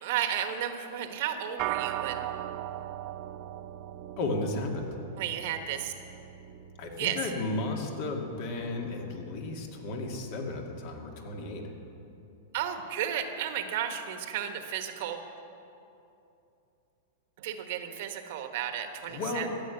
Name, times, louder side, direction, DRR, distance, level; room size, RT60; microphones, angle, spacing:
voice 1, 0.0-2.2 5.2-5.9 7.0-7.2 12.5-15.2 17.4-19.5, right 10 dB, 60° right, 6 dB, 1.3 m, -33 dB
sound 1, 1.6-11.1, right 13 dB, 45° right, 0.4 m, -40 dB
voice 2, 4.2-4.9 6.8-11.6 19.1-19.5, left 2 dB, 55° left, 2 dB, 2.1 m, -34 dB
13.5 x 8.8 x 7.9 m, 2.8 s
hypercardioid pair, 135°, 0 cm